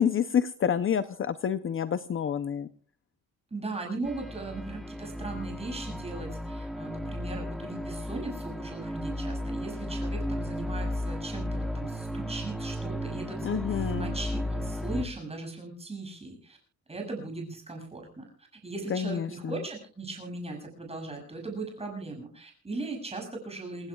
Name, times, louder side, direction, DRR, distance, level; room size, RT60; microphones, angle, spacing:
voice 1, 0.0-2.7 13.4-14.1 18.9-19.6, left 8 dB, 40° left, 13 dB, 0.6 m, -28 dB
voice 2, 3.5-16.6 16.9-18.3 18.6-23.9, right 2 dB, 20° right, 1 dB, 7.3 m, -38 dB
sound 1, 4.0-15.0, equal, ahead, 0.9 m, -34 dB
28.0 x 16.0 x 2.3 m, 0.40 s
wide cardioid pair, 160°, 33 cm